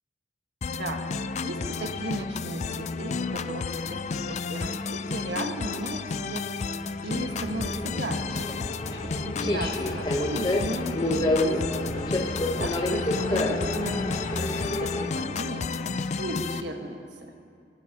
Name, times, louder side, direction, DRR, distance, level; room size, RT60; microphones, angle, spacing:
sound 1, 0.6-16.6, left 4 dB, 40° left, 0.4 m, -32 dB
voice 1, 1.4-4.0 4.3-6.4 7.0-8.5 9.0-12.0 12.6-15.7 16.2-17.0, right 1 dB, 80° right, 2 dB, 1.6 m, -36 dB
Subway metro underground, 7.1-15.1, left 1 dB, 25° left, 1.1 m, -29 dB
26.0 x 13.0 x 3.0 m, 2.4 s
head